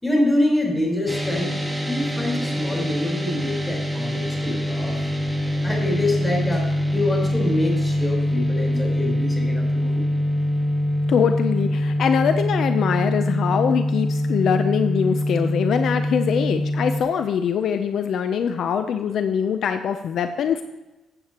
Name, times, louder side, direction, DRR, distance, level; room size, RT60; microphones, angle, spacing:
voice 1, 0.0-1.5 1.9-5.0 5.6-10.0, left 1 dB, 15° left, -1 dB, 4.2 m, -25 dB
sound 1, 1.1-17.0, left 1 dB, 10° right, 1.6 m, -24 dB
voice 2, 11.1-20.6, left 7 dB, 65° left, 8 dB, 0.6 m, -23 dB
15.5 x 8.3 x 3.0 m, 1.1 s
cardioid pair, 90°, 0 cm